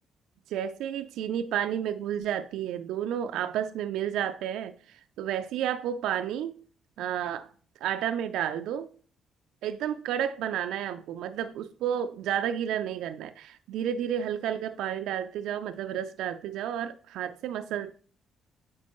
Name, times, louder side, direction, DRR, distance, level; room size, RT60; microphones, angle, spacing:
voice 1, 0.5-6.5 7.0-7.5 7.8-8.9 9.6-17.9, right 9 dB, 90° right, 0.3 m, -31 dB
8.4 x 4.4 x 3.0 m
cardioid pair, 90°, 0 cm